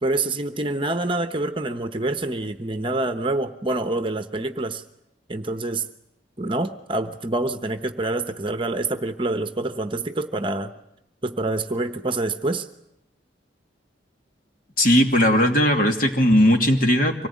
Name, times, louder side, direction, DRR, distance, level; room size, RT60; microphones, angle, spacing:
voice 1, 0.0-4.8 5.3-5.9 6.4-10.7 11.2-12.7, right 2 dB, 25° right, 9 dB, 1.0 m, -26 dB
voice 2, 14.8-17.3, equal, 45° left, 3 dB, 2.7 m, -18 dB
25.0 x 18.5 x 9.5 m, 0.86 s
head